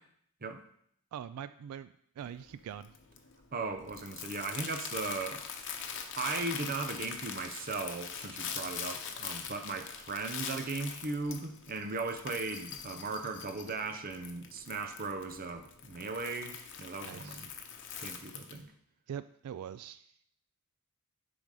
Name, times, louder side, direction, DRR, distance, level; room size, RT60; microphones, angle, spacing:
voice 1, 1.1-2.9 17.0-17.5 19.1-20.1, right 9 dB, 80° right, 15 dB, 0.3 m, -43 dB
Crumpling crinkling, 2.2-18.6, left 7 dB, 55° left, 0.9 m, -43 dB
voice 2, 3.5-5.5 5.8-17.5 17.9-18.7, right 3 dB, 40° right, 7 dB, 0.7 m, -37 dB
10.5 x 4.0 x 4.8 m, 0.67 s
head